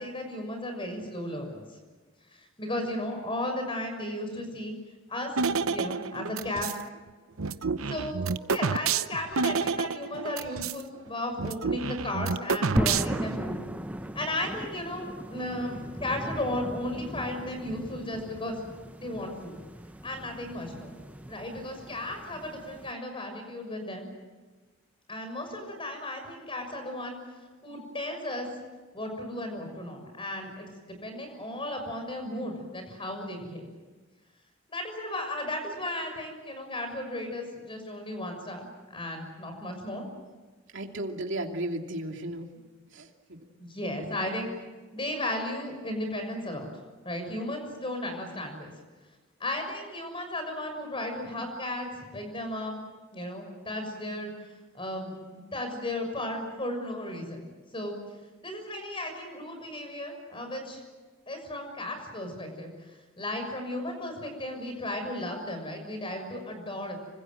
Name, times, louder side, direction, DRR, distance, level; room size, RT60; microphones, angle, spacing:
voice 1, 0.0-1.7 2.3-4.7 5.1-5.3 5.6-6.7 7.9-8.2 8.5-13.6 14.1-18.6 19.0-19.5 20.0-20.9 21.3-24.1 25.1-27.2 27.6-28.5 28.9-30.7 31.0-33.7 34.7-40.0 43.6-44.5 44.9-46.7 47.0-48.7 49.4-52.7 53.1-54.3 54.7-57.4 57.7-57.9 58.4-60.8 61.3-62.7 63.2-67.0, left 1 dB, 25° left, 5 dB, 6.5 m, -35 dB
sound 1, 5.4-6.8 7.4-10.8 11.1-11.2 11.4-13.4, right 5 dB, 85° right, 0.8 m, -29 dB
sound 2, 12.8-22.9, equal, 5° right, 0.9 m, -37 dB
voice 2, 40.7-42.5 42.9-43.5, right 1 dB, 60° right, 3 dB, 2.8 m, -35 dB
26.5 x 25.5 x 7.8 m, 1.3 s
head